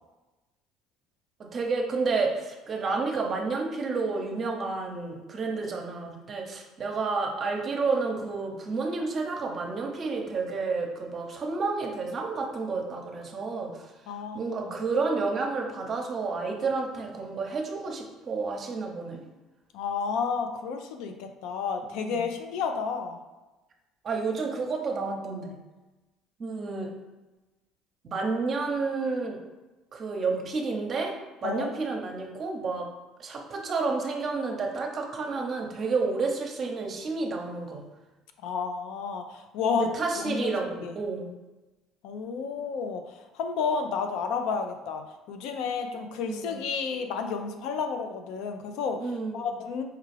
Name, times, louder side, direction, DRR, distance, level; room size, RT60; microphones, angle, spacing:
voice 1, 1.5-13.8 14.3-19.2 21.9-22.2 24.0-25.6 26.4-26.9 28.0-29.4 29.9-31.1 31.4-32.9 33.2-37.8 39.8-41.3 46.2-46.6 49.0-49.4, right 4 dB, 45° right, 2 dB, 0.7 m, -30 dB
voice 2, 14.1-14.8 19.7-23.2 31.4-31.7 38.4-39.9 40.2-41.0 42.0-49.8, left 5 dB, 75° left, 6 dB, 0.4 m, -31 dB
4.5 x 2.4 x 3.2 m, 1.1 s
supercardioid pair, 85°, 0 cm